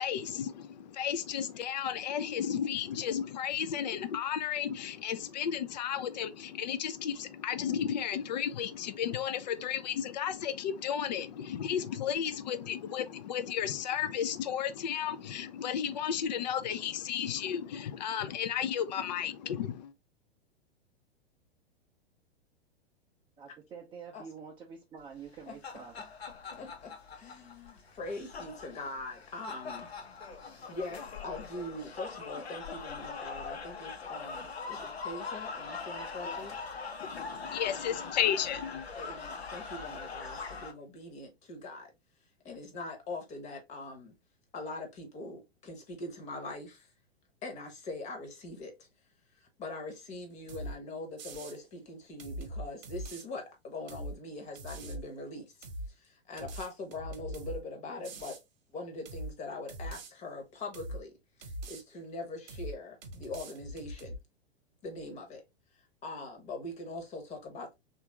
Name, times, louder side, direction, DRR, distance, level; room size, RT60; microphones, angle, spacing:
voice 1, 0.0-19.9 37.0-38.9, left 9 dB, 45° left, 0.4 m, -33 dB
voice 2, 23.4-25.9 36.2-36.5, right 6 dB, 15° right, 0.5 m, -47 dB
sound 1, 25.3-40.7, left 4 dB, 75° left, 0.9 m, -42 dB
voice 3, 26.6-29.9 30.7-36.5 38.9-41.9 42.4-44.1 44.5-46.9 47.4-48.9 49.4-55.5 55.9-58.4 58.7-61.1 61.4-64.1 64.8-65.4 66.0-67.7, left 2 dB, 20° left, 1.0 m, -42 dB
sound 2, 50.5-50.8 51.2-51.6 52.2-53.3 53.9-54.2 54.6-55.0 55.6-55.9 56.4-57.6 58.0-58.4 59.1-59.3 59.7-60.1 60.7-61.0 61.4-61.8 62.5-62.8 63.0-64.2, right 1 dB, 45° right, 1.0 m, -41 dB
3.3 x 2.5 x 2.8 m
figure-of-eight pair, 100°, 31 cm